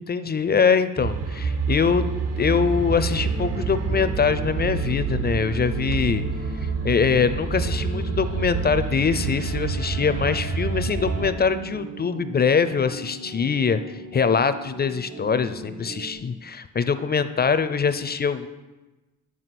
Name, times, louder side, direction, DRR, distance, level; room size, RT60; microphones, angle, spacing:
voice 1, 0.0-2.0 2.4-6.2 6.6-18.5, left 6 dB, 30° left, 12 dB, 0.4 m, -23 dB
sound 1, 1.0-11.3, right 5 dB, 50° right, 0.7 m, -27 dB
sound 2, 1.8-16.1, right 1 dB, 75° right, 1.4 m, -39 dB
9.7 x 4.8 x 5.9 m, 1.1 s
cardioid pair, 115°, 33 cm